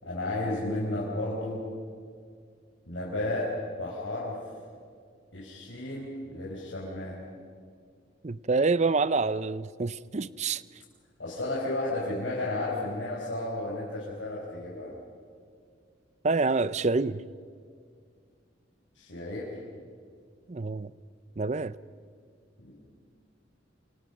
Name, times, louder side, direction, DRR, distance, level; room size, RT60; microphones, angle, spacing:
voice 1, 0.0-1.6 2.9-3.5 3.8-4.4 5.3-7.2 11.2-14.9 19.0-19.5 22.6-22.8, left 2 dB, 85° left, 5.1 m, -33 dB
voice 2, 8.2-10.6 16.2-17.2 20.5-20.9 21.4-21.7, right 3 dB, 35° right, 0.6 m, -27 dB
28.0 x 26.5 x 6.1 m
head